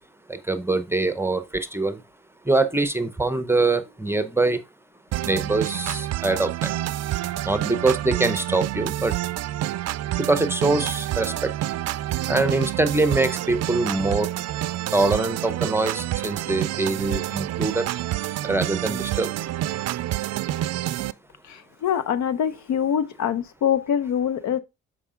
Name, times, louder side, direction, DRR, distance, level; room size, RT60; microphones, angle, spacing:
voice 1, 0.3-2.0 2.5-4.6 5.2-6.7 7.5-9.1 10.2-11.5 12.3-14.3 14.9-17.9 18.4-19.3, right 2 dB, 10° right, 0.7 m, -23 dB
sound 1, 5.1-21.1, right 14 dB, 60° right, 0.4 m, -28 dB
voice 2, 21.4-24.6, left 8 dB, 70° left, 0.7 m, -24 dB
6.7 x 5.0 x 3.7 m
cardioid pair, 90°, 30 cm